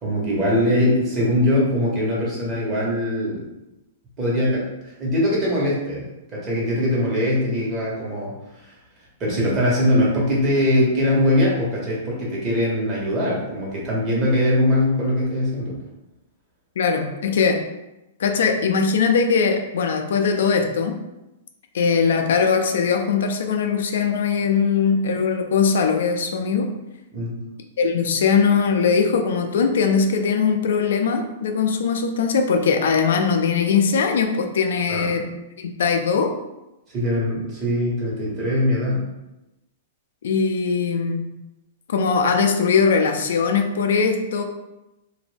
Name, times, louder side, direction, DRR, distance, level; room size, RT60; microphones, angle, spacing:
voice 1, 0.0-3.4 4.2-4.7 5.0-8.3 9.2-15.8 27.1-27.4 34.9-35.1 36.9-39.1, left 1 dB, 30° right, -5 dB, 1.1 m, -21 dB
voice 2, 16.8-17.7 18.2-21.0 21.7-26.7 27.8-36.4 40.2-41.3 41.9-44.4, left 5 dB, 75° left, 5 dB, 0.3 m, -20 dB
2.5 x 2.1 x 3.3 m, 0.96 s
hypercardioid pair, 135°, 0 cm